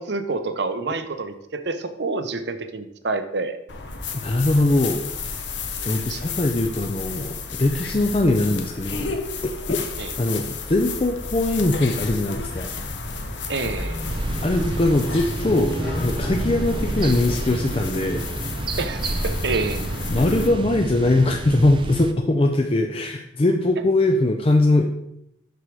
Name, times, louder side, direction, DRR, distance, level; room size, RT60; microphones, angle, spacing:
voice 1, 0.0-3.6 6.1-6.3 10.0-10.1 13.5-14.1 18.8-19.8, right 3 dB, 70° right, 9 dB, 0.7 m, -28 dB
sound 1, 3.7-20.5, left 3 dB, 80° left, 1.0 m, -32 dB
voice 2, 4.2-5.0 5.8-9.2 9.4-9.9 10.2-12.7 14.4-18.2 20.1-24.9, left 2 dB, 30° left, 4 dB, 0.5 m, -21 dB
sound 2, 13.8-18.7, left 1 dB, 60° left, 2.1 m, -34 dB
sound 3, 14.1-22.1, right 2 dB, 25° right, 0.4 m, -30 dB
6.8 x 6.4 x 4.7 m, 0.80 s
head